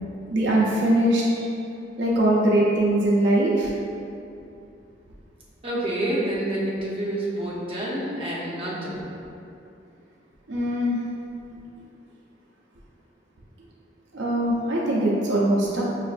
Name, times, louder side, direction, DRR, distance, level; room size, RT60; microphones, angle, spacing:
voice 1, 0.3-1.2 2.0-3.7 10.5-11.0 14.1-15.8, right 1 dB, 80° right, -4 dB, 0.5 m, -21 dB
voice 2, 5.6-9.0, right 1 dB, 30° right, -6 dB, 0.7 m, -28 dB
5.6 x 2.5 x 2.4 m, 2.6 s
head